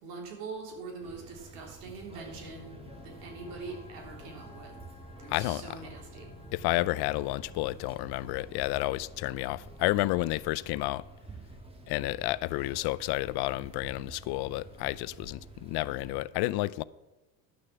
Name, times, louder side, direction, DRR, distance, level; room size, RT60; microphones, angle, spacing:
voice 1, 0.0-2.7 3.0-4.7 5.2-6.3, right 4 dB, 90° right, 3.6 m, -43 dB
sound 1, 1.0-16.2, right 2 dB, 10° right, 1.7 m, -50 dB
sound 2, 2.3-10.7, left 2 dB, 15° left, 1.8 m, -51 dB
voice 2, 5.3-5.6 6.5-11.0 11.9-16.8, left 18 dB, 60° left, 0.5 m, -31 dB
11.5 x 6.5 x 6.9 m
supercardioid pair, 100°, 46 cm